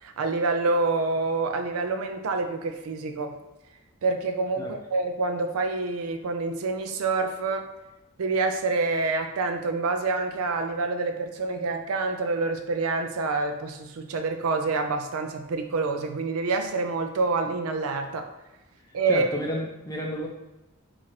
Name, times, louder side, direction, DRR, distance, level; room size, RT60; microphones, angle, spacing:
voice 1, 0.0-3.3 4.0-7.7 8.2-18.3 18.9-19.3, right 3 dB, 80° right, 6 dB, 0.4 m, -27 dB
voice 2, 19.1-20.3, left 1 dB, 15° left, 0 dB, 0.4 m, -31 dB
4.5 x 2.5 x 2.9 m, 1.0 s
head